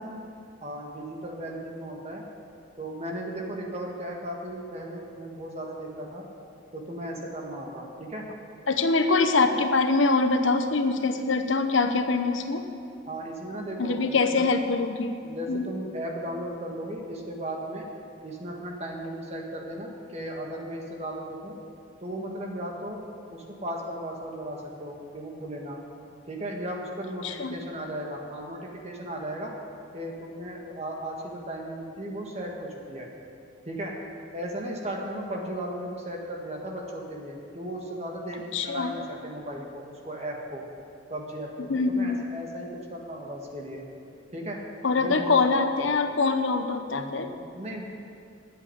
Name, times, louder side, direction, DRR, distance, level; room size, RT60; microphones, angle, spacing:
voice 1, 0.6-2.2 2.8-6.2 6.7-8.2 13.1-14.5 15.2-17.8 18.2-21.6 22.0-23.0 23.3-25.8 26.3-29.5 29.9-33.1 33.6-33.9 34.3-40.6 41.1-43.8 44.3-44.6 45.0-45.4 47.2-47.8, right 1 dB, 35° right, 0 dB, 1.6 m, -36 dB
voice 2, 8.7-12.7 13.8-15.2 15.5-15.7 27.2-27.6 38.5-38.9 41.6-42.2 44.8-47.3, left 3 dB, 80° left, 7 dB, 0.9 m, -24 dB
9.9 x 8.2 x 9.8 m, 2.5 s
head